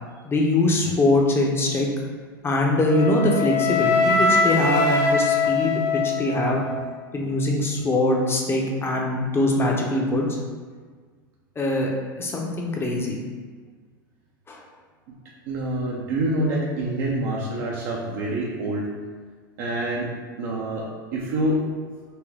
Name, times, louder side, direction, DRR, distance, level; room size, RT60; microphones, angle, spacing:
voice 1, 0.2-1.9 2.4-6.7 7.1-10.3 11.6-11.9 12.2-13.2 14.5-14.6, left 2 dB, 20° left, 0 dB, 0.7 m, -22 dB
Wind instrument woodwind instrument, 2.9-6.9, left 3 dB, 50° left, 1.1 m, -22 dB
voice 2, 15.5-18.9 19.6-20.1 20.4-21.6, right 1 dB, 60° right, -4 dB, 0.6 m, -26 dB
4.2 x 2.1 x 3.4 m, 1.5 s
hypercardioid pair, 95°, 11 cm